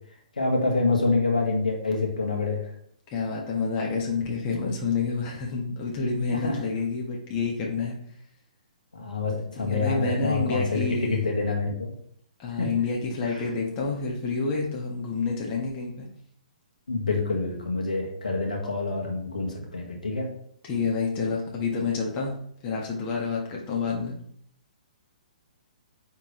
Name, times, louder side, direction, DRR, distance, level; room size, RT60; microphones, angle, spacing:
voice 1, 0.4-2.6 6.3-6.5 8.9-11.9 12.6-12.7 13.3-13.4 16.9-20.3, left 3 dB, 70° left, 0 dB, 1.7 m, -27 dB
voice 2, 3.1-7.9 9.5-11.3 12.4-16.1 20.6-22.3 22.6-24.1, left 4 dB, 25° left, -2 dB, 1.5 m, -28 dB
8.9 x 3.7 x 3.2 m, 0.65 s
figure-of-eight pair, 120°, 4 cm